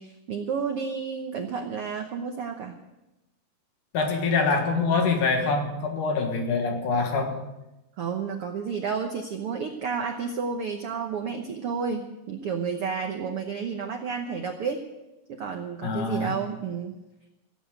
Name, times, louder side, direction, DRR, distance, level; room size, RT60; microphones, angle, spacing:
voice 1, 0.0-2.7 8.0-14.8 15.3-16.9, right 6 dB, 90° right, 1.2 m, -31 dB
voice 2, 3.9-7.4 15.8-16.3, left 4 dB, 65° left, 3.1 m, -25 dB
16.5 x 8.5 x 8.0 m
omnidirectional pair, 4.1 m